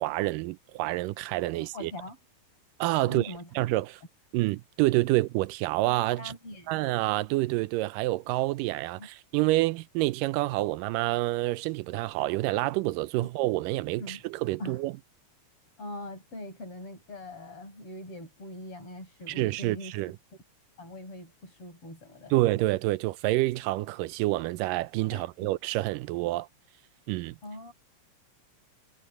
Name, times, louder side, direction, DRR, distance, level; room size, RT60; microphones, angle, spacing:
voice 1, 0.0-1.9 2.8-4.0 4.3-6.3 6.7-14.9 19.3-20.1 22.3-26.5 27.1-27.4, right 18 dB, 80° right, 2.1 m, -28 dB
voice 2, 1.6-2.2 3.1-3.5 6.2-6.8 9.0-9.1 13.2-13.3 14.0-14.2 14.6-14.8 15.8-19.9 20.8-22.4 25.1-25.3 27.4-27.7, left 1 dB, 40° left, 8.8 m, -42 dB
omnidirectional pair, 4.1 m